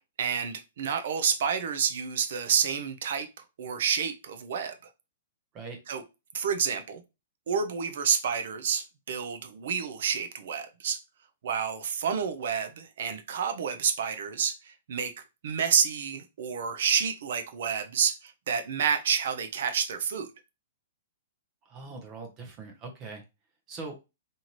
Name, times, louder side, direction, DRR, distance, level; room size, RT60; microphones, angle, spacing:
voice 1, 0.2-4.7 5.9-6.0 6.3-7.0 7.5-11.0 11.4-15.1 15.4-20.3, right 7 dB, 65° right, 0.5 m, -29 dB
voice 2, 21.7-23.2 23.7-23.9, right 3 dB, 30° right, 0.7 m, -41 dB
2.7 x 2.5 x 3.0 m
hypercardioid pair, 125°, 0 cm